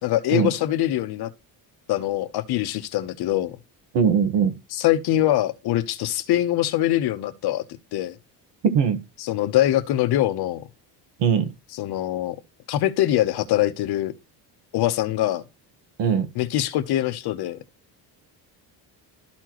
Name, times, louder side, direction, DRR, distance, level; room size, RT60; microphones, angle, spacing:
voice 1, 0.0-1.3 1.9-3.6 4.7-7.6 7.9-8.2 9.2-10.7 11.7-12.4 12.7-14.1 14.7-15.4 16.3-17.6, left 13 dB, 65° left, 1.0 m, -23 dB
voice 2, 3.9-4.5 8.6-9.0 11.2-11.5 16.0-16.3, right 7 dB, 85° right, 1.6 m, -20 dB
12.5 x 4.4 x 3.0 m
cardioid pair, 140°, 42 cm